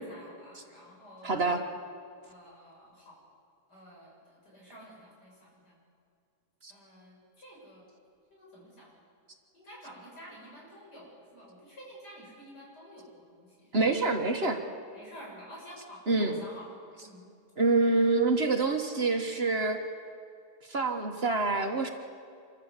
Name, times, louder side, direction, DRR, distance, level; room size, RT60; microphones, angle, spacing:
voice 1, 0.0-1.5 2.3-3.2 3.7-4.1 4.4-5.7 6.7-7.8 8.3-8.9 9.5-14.2 14.9-16.7 17.0-17.2, equal, 85° left, -4 dB, 7.6 m, -50 dB
voice 2, 1.2-1.6 6.6-6.7 13.7-14.6 16.1-16.4 17.6-19.8 20.7-21.9, right 3 dB, 40° right, 4 dB, 1.5 m, -26 dB
26.0 x 14.5 x 8.2 m, 2.4 s
omnidirectional pair, 1.7 m